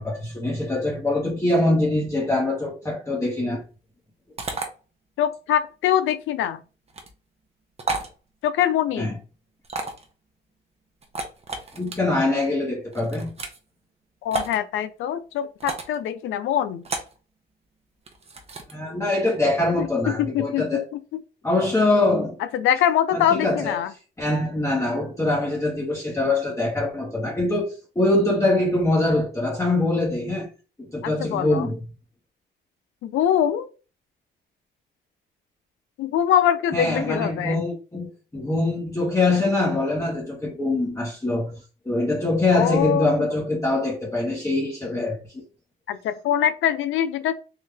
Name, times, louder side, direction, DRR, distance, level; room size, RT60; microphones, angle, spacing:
voice 1, 0.0-3.6 9.0-9.2 11.7-13.3 18.7-20.8 21.4-22.4 23.1-23.8 24.2-30.5 30.8-31.8 36.7-45.4, left 2 dB, 15° left, 1.2 m, -23 dB
sound 1, 4.4-4.7 6.9-7.1 7.8-8.1 9.6-10.1 11.0-12.0 12.9-13.6 14.3-14.6 15.6-16.0 16.8-17.2 18.1-18.7, right 3 dB, 30° right, 0.9 m, -31 dB
voice 2, 5.2-6.6 8.4-9.1 14.2-16.8 19.8-19.9 20.2-20.8 21.1-21.2 22.5-23.9 31.0-31.7 33.0-33.7 36.0-37.6 42.5-43.1 45.9-47.3, left 10 dB, 80° left, 0.5 m, -23 dB
3.7 x 2.6 x 3.4 m
cardioid pair, 90°, 20 cm